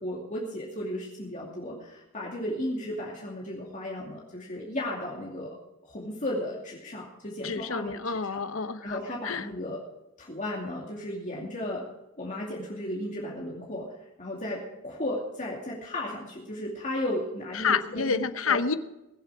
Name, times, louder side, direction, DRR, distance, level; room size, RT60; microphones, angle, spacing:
voice 1, 0.0-5.5 5.8-8.4 8.8-9.8 10.2-11.8 12.2-13.9 14.2-18.1 18.4-18.6, left 1 dB, 40° left, -3 dB, 2.6 m, -34 dB
voice 2, 7.4-9.0 9.2-9.5 17.5-18.7, left 5 dB, 75° left, 12 dB, 0.9 m, -28 dB
21.5 x 8.1 x 4.9 m, 0.93 s
head